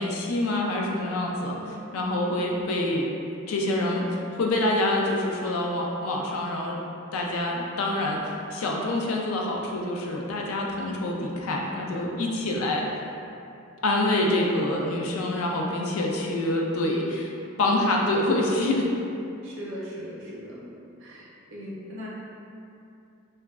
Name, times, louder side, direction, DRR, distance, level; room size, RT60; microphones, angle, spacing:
voice 1, 0.0-1.6 1.9-3.1 3.5-6.8 7.1-13.0 13.8-17.3 17.6-18.9, left 1 dB, 85° left, -1 dB, 0.4 m, -26 dB
voice 2, 2.3-2.6 19.4-20.6 21.0-22.1, equal, 60° right, -6 dB, 0.6 m, -39 dB
2.9 x 2.3 x 2.3 m, 2.6 s
head